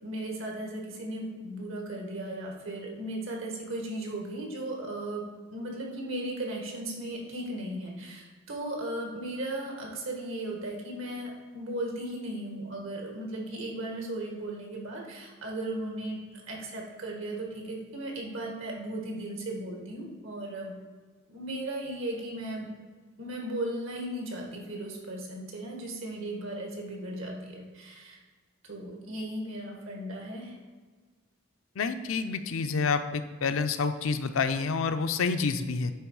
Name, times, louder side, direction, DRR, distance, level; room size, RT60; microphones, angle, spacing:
voice 1, 0.0-5.2 5.5-20.7 21.3-22.7 23.2-28.2 28.7-30.5, right 1 dB, 75° right, -1 dB, 1.8 m, -36 dB
voice 2, 31.8-35.9, left 4 dB, 75° left, 9 dB, 0.5 m, -28 dB
9.1 x 3.7 x 4.7 m, 1.4 s
head